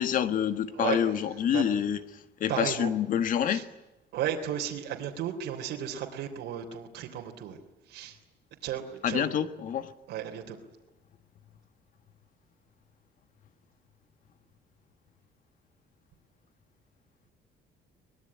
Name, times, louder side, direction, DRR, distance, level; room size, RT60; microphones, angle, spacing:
voice 1, 0.0-2.0 2.4-3.6 9.0-9.9, left 9 dB, 50° left, 10 dB, 1.6 m, -27 dB
voice 2, 0.7-1.6 2.5-2.9 3.5-3.6 4.1-7.6 7.9-8.2 8.6-9.3 10.1-10.6, right 9 dB, 80° right, 1 dB, 3.4 m, -34 dB
24.0 x 21.0 x 9.7 m, 1.0 s
cardioid pair, 170°, 18 cm